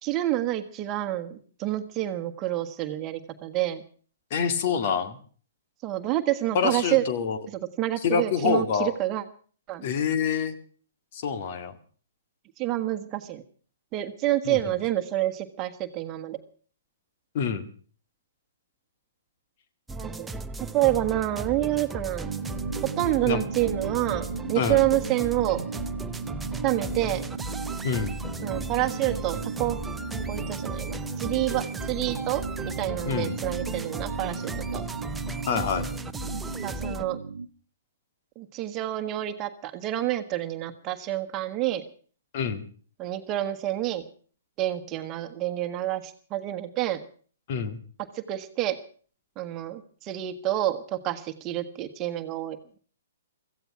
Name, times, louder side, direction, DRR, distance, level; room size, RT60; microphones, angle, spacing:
voice 1, 0.0-3.8 5.8-7.0 7.5-9.2 9.7-9.9 12.6-13.4 13.9-16.4 20.0-20.3 20.7-22.3 23.0-25.6 26.6-27.2 28.4-29.8 30.3-34.8 36.6-37.2 38.3-41.8 43.0-44.0 44.6-47.0 48.1-48.8 49.4-52.8, right 14 dB, 30° right, 7 dB, 1.5 m, -28 dB
voice 2, 4.3-5.2 6.5-7.4 8.0-8.9 9.8-10.5 11.1-11.7 14.5-14.6 17.3-17.7 23.3-23.4 24.6-24.8 27.8-28.2 33.1-33.4 35.5-35.9 42.3-42.6 47.5-47.8, left 6 dB, 45° left, 11 dB, 2.0 m, -26 dB
sound 1, 19.9-37.0, right 2 dB, 5° right, 0.8 m, -36 dB
sound 2, 22.2-37.5, right 4 dB, 75° right, 0.8 m, -35 dB
16.5 x 15.0 x 6.0 m, 0.44 s
figure-of-eight pair, 120°, 0 cm